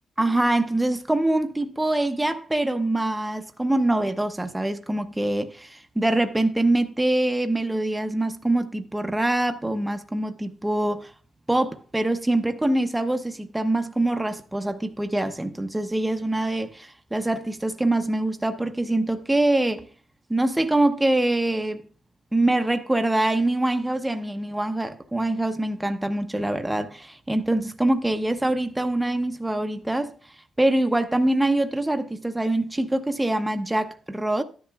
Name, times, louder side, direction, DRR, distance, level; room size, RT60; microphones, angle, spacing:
voice 1, 0.2-11.1 11.5-19.9 20.3-21.8 22.3-30.1 30.6-34.4, right 1 dB, 5° right, 0.6 m, -24 dB
12.5 x 10.5 x 2.3 m
cardioid pair, 140°, 0 cm